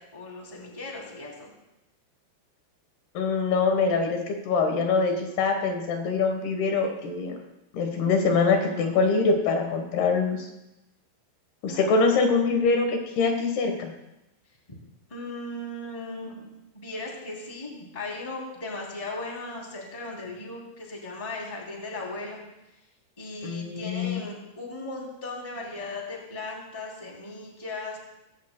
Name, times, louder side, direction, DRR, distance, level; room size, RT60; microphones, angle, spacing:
voice 1, 0.1-1.5 11.7-12.2 15.1-16.5 16.7-22.4 23.2-28.0, left 2 dB, 10° left, -2 dB, 2.2 m, -37 dB
voice 2, 3.1-7.4 7.7-10.5 11.6-13.9 23.4-24.3, left 4 dB, 75° left, 4 dB, 3.2 m, -24 dB
18.0 x 15.5 x 2.2 m, 0.93 s
omnidirectional pair, 4.7 m